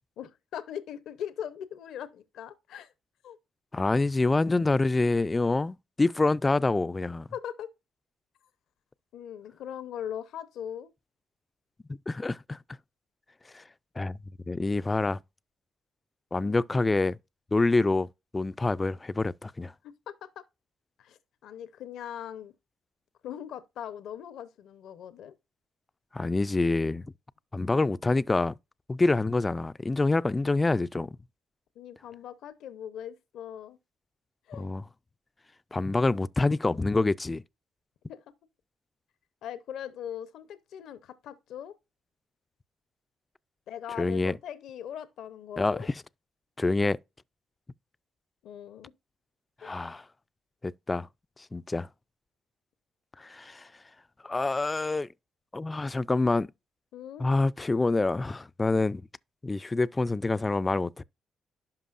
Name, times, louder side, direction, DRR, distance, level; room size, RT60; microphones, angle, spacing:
voice 1, 0.2-2.9 3.2-3.4 7.3-7.7 9.1-10.9 16.4-16.6 19.8-19.9 20.2-20.4 21.0-22.5 23.2-25.3 31.8-33.8 34.5-34.7 38.1-38.2 39.4-41.7 43.7-45.9 48.4-48.9 49.6-49.8 56.9-57.3, left 9 dB, 80° left, 0.7 m, -40 dB
voice 2, 3.7-7.3 12.1-12.6 13.5-13.6 14.0-14.2 14.5-15.2 16.3-17.2 17.5-18.1 18.3-19.7 26.1-27.1 27.5-28.5 28.9-31.2 34.5-34.9 35.7-37.4 44.0-44.4 45.6-46.0 46.6-47.0 49.6-50.0 50.6-51.1 51.5-51.9 53.2-53.7 54.2-55.1 55.5-56.5 57.2-59.0 59.4-61.0, left 3 dB, 20° left, 0.3 m, -26 dB
11.5 x 5.1 x 2.5 m
cardioid pair, 90°, 0 cm